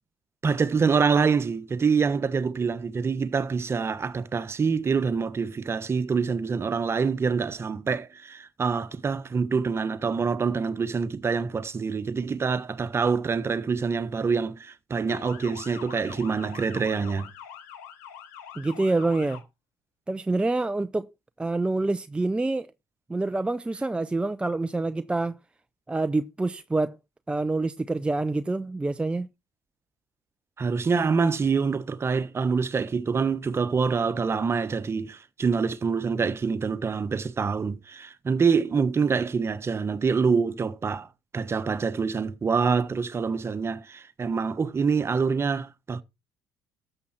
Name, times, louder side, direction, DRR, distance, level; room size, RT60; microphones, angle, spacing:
voice 1, 0.4-17.3 30.6-41.1 41.3-46.0, right 5 dB, 30° right, 1.3 m, -26 dB
Motor vehicle (road) / Siren, 15.1-19.4, left 9 dB, 90° left, 3.4 m, -44 dB
voice 2, 18.6-19.4 20.1-21.1 21.4-22.7 23.1-25.4 25.9-27.0 27.3-29.3, right 2 dB, 10° right, 0.6 m, -26 dB
13.0 x 7.8 x 4.3 m
supercardioid pair, 85°, 8 cm